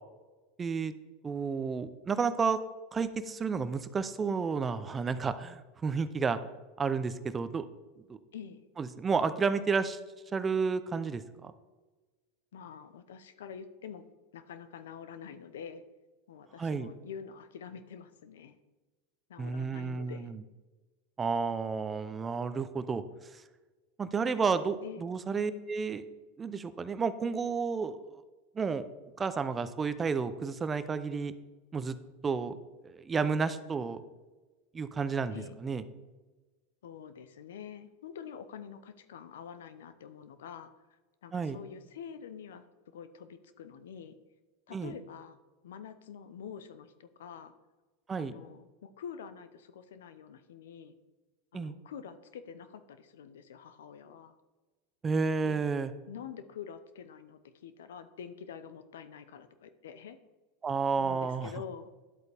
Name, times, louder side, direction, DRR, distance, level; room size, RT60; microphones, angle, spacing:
voice 1, 0.6-0.9 1.2-2.6 2.9-6.4 6.8-7.6 8.1-8.2 8.8-10.0 10.3-11.5 16.6-16.9 19.4-20.4 21.2-23.0 23.3-23.4 24.0-26.0 26.4-28.2 28.5-28.8 29.2-31.3 31.7-31.9 32.2-32.6 32.8-34.0 34.7-35.4 35.6-35.8 41.3-41.6 44.7-44.9 48.1-48.3 51.5-51.7 55.0-55.9 60.6-61.5, right 5 dB, 20° right, 12 dB, 0.6 m, -31 dB
voice 2, 8.3-8.6 12.5-14.0 14.3-15.8 16.3-18.6 19.3-20.3 24.8-25.0 35.3-35.6 36.8-40.7 41.2-44.2 44.7-45.4 45.6-47.5 48.2-50.9 51.5-54.3 55.4-55.6 56.1-60.2 61.0-61.9, left 7 dB, 85° left, 12 dB, 0.7 m, -46 dB
11.0 x 8.0 x 3.5 m, 1.3 s
supercardioid pair, 115°, 0 cm